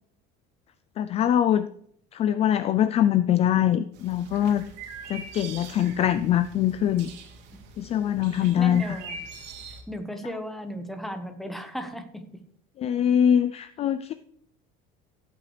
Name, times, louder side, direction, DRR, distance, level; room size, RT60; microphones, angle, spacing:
voice 1, 1.0-1.7 2.1-4.6 5.1-7.1 7.8-8.8 12.8-14.1, left 10 dB, 30° left, 12 dB, 0.4 m, -23 dB
sound 1, 3.9-9.8, right 4 dB, 60° right, 2.6 m, -43 dB
voice 2, 8.1-9.3 9.9-12.3, equal, ahead, 6 dB, 1.2 m, -36 dB
15.5 x 8.6 x 3.3 m, 0.66 s
cardioid pair, 155°, 20 cm